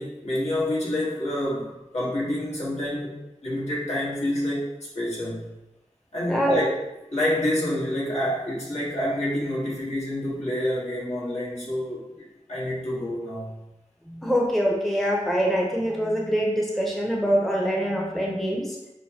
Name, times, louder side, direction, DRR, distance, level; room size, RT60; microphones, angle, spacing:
voice 1, 0.0-3.1 3.4-4.6 4.9-5.5 6.1-6.7 7.1-13.6, left 1 dB, 65° left, -7 dB, 1.4 m, -28 dB
voice 2, 6.3-6.6 14.1-18.7, equal, ahead, -2 dB, 0.7 m, -24 dB
6.1 x 2.1 x 2.8 m, 0.95 s
wide cardioid pair, 50°, 12 cm